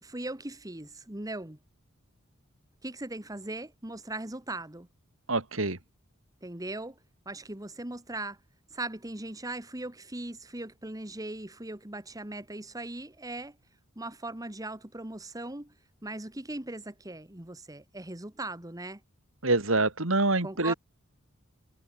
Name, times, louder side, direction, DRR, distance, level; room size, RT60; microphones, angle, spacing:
voice 1, 0.0-1.6 2.8-4.9 6.4-7.0 7.2-8.4 8.7-13.6 13.9-15.7 16.0-19.0 20.4-20.7, right 2 dB, 15° right, 1.7 m, -39 dB
voice 2, 5.3-5.8 19.4-20.7, right 2 dB, 70° right, 3.1 m, -26 dB
head